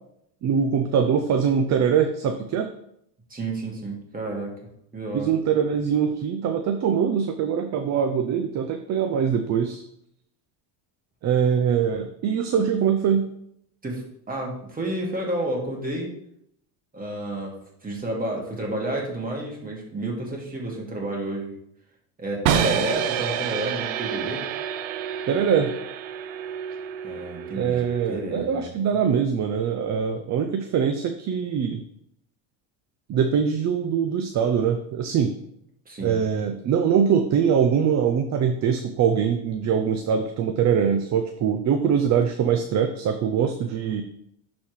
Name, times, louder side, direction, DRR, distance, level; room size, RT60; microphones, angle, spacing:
voice 1, 0.4-2.7 5.1-9.8 11.2-13.3 25.3-25.7 27.5-31.8 33.1-35.3 36.0-44.0, right 7 dB, 35° right, 7 dB, 0.6 m, -23 dB
voice 2, 3.3-4.5 4.9-5.3 13.8-16.1 16.9-17.6 17.8-21.5 22.2-24.5 27.0-28.7 35.9-36.2, right 1 dB, 15° right, -1 dB, 2.1 m, -30 dB
sound 1, 22.5-28.4, right 9 dB, 85° right, 0.9 m, -28 dB
11.5 x 4.3 x 3.2 m, 0.74 s
cardioid pair, 125°, 49 cm